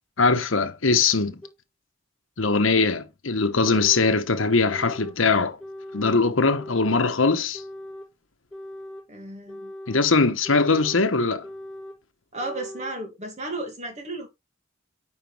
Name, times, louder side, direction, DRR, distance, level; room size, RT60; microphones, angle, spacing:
voice 1, 0.2-1.4 2.4-5.6 5.9-7.6 9.9-11.5, left 4 dB, 85° left, 1.2 m, -21 dB
sound 1, 1.4-1.5 2.4-2.5 3.4-4.2 4.6-5.2 5.6-6.2 6.6-7.1 7.5-8.1 8.5-9.1 9.5-10.0 10.4-11.0 11.4-12.0 12.4-13.0, left 1 dB, 5° left, 2.5 m, -40 dB
voice 2, 9.1-9.7 12.3-14.3, right 2 dB, 35° right, 2.4 m, -34 dB
9.5 x 5.6 x 3.4 m
head